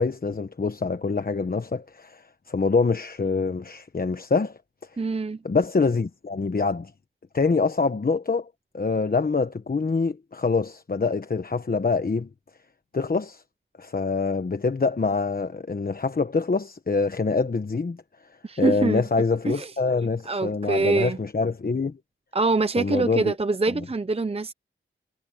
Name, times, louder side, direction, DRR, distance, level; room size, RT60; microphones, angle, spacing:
voice 1, 0.0-4.6 5.4-6.9 7.3-8.5 8.7-12.3 12.9-13.4 13.8-18.0 18.6-22.0 22.8-23.3, left 4 dB, 45° left, 1.2 m, -25 dB
voice 2, 5.0-5.4 18.4-19.0 19.5-19.7 20.3-21.2 22.3-24.5, right 3 dB, 30° right, 0.7 m, -24 dB
wide cardioid pair, 105°, 21 cm